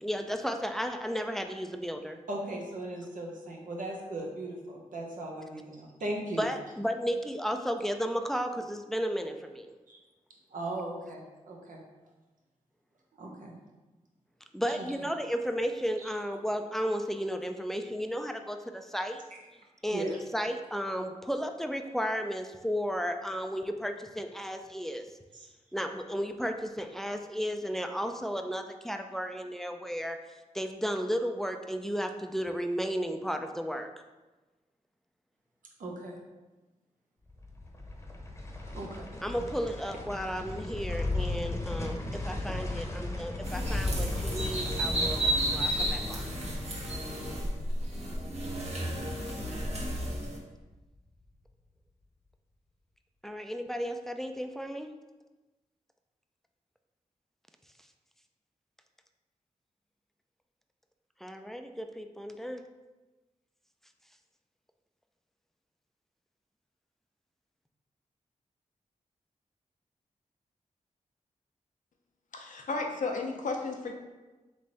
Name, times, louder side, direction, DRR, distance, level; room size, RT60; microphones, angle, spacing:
voice 1, 0.0-2.2 6.4-9.7 14.5-19.2 19.8-25.1 25.7-30.2 30.5-33.9 39.2-46.3 53.2-54.9 61.2-62.6, equal, 5° left, 5 dB, 0.4 m, -34 dB
voice 2, 2.3-6.4 9.9-10.0 10.5-11.8 13.2-13.5 14.8-14.9 16.0-16.1 19.9-20.1 25.3-25.5 35.8-36.2 38.7-39.1 41.2-41.3, right 1 dB, 75° right, -1 dB, 0.9 m, -38 dB
sound 1, 37.3-50.4 50.8-50.9, left 2 dB, 20° left, 0.9 m, -37 dB
sound 2, 43.4-50.4, right 1 dB, 50° right, 1.1 m, -32 dB
voice 3, 72.3-73.9, left 3 dB, 70° left, 2 dB, 0.7 m, -33 dB
3.5 x 3.2 x 3.9 m, 1.1 s
cardioid pair, 45°, 14 cm